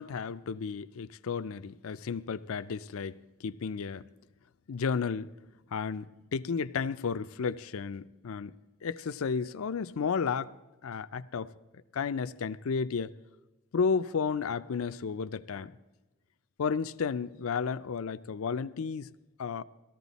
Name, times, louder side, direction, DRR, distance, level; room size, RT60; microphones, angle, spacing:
voice 1, 0.0-3.1 3.4-4.1 4.7-5.3 5.7-6.1 6.3-8.5 8.8-10.5 10.8-11.5 11.9-13.1 13.7-15.7 16.6-19.1 19.4-19.6, left 5 dB, 65° left, 0.5 m, -32 dB
17.5 x 14.0 x 4.1 m
head